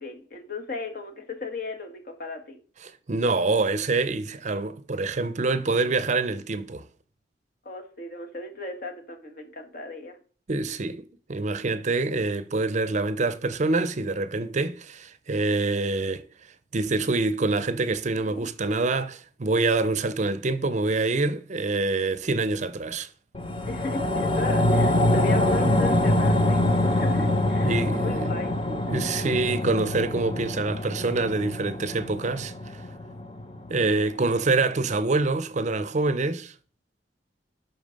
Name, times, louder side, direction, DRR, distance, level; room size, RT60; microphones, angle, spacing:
voice 1, 0.0-2.6 7.7-10.2 18.2-18.5 23.6-27.7 28.0-28.6, left 3 dB, 55° left, 1.8 m, -36 dB
voice 2, 3.1-6.8 10.5-11.0 11.3-16.3 16.7-23.1 27.6-28.3 28.7-32.5 33.7-36.5, right 3 dB, 45° right, 0.6 m, -26 dB
sound 1, 23.3-33.9 34.3-34.4, left 1 dB, 30° left, 0.9 m, -24 dB
8.6 x 5.8 x 5.2 m
head